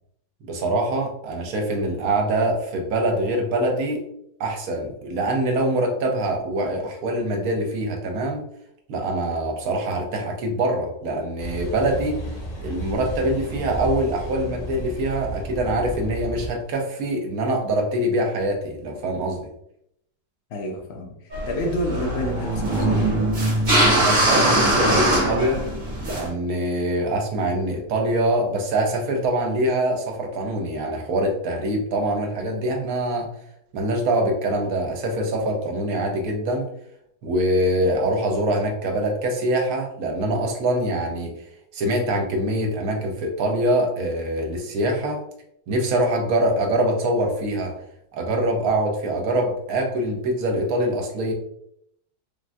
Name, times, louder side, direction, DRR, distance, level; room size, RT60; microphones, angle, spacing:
voice 1, 0.5-4.0 4.4-8.4 8.9-12.2 12.6-19.5 23.9-25.6 26.0-33.3 33.7-36.7 37.2-41.3 41.7-45.2 45.7-47.7 48.1-51.3, right 1 dB, 70° right, 2 dB, 1.0 m, -24 dB
Car passing by / Idling / Accelerating revving vroom, 11.4-16.5, equal, 60° left, 1.3 m, -33 dB
voice 2, 20.5-23.2, equal, 90° left, 1 dB, 0.5 m, -29 dB
sound 1, 21.3-26.3, right 1 dB, 35° right, 0.9 m, -21 dB
3.4 x 2.2 x 2.5 m, 0.73 s
omnidirectional pair, 1.7 m